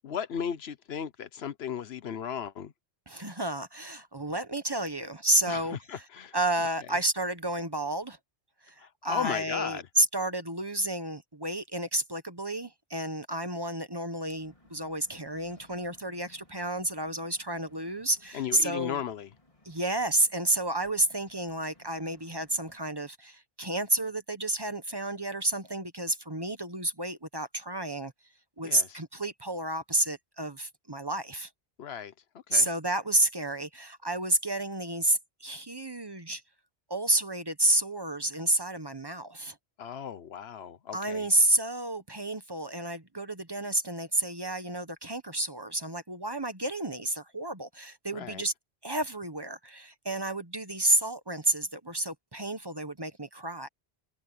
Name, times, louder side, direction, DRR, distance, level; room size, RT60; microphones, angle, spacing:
voice 1, 0.0-2.7 5.5-6.3 8.8-9.9 18.3-19.3 28.6-29.0 31.8-32.1 32.5-32.7 39.8-41.3 48.1-48.4, left 8 dB, 80° left, 1.1 m, -36 dB
voice 2, 3.1-6.0 6.3-8.2 8.7-19.0 19.6-28.1 28.6-31.5 32.5-36.4 36.9-39.6 40.9-48.5 48.8-53.7, right 1 dB, 25° right, 1.1 m, -30 dB
sound 1, 14.2-22.8, left 2 dB, 35° left, 4.4 m, -61 dB
omnidirectional pair, 1.0 m